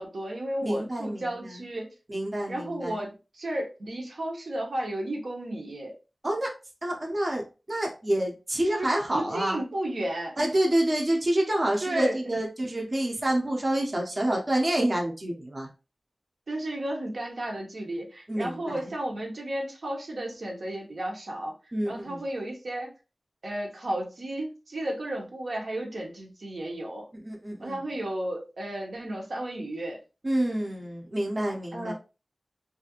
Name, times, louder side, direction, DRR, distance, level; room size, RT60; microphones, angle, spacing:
voice 1, 0.0-1.9 2.5-5.9 8.7-10.5 11.8-12.2 16.5-21.5 21.9-22.9 23.4-27.0 27.6-30.0 31.7-31.9, right 1 dB, 80° right, -1 dB, 0.8 m, -33 dB
voice 2, 0.6-1.6 2.1-3.1 6.2-6.5 6.8-9.6 10.4-15.7 18.3-18.9 21.7-22.2 27.2-27.8 30.2-31.9, right 1 dB, 40° right, 0 dB, 0.6 m, -28 dB
2.7 x 2.4 x 2.8 m, 0.31 s
wide cardioid pair, 80°, 0 cm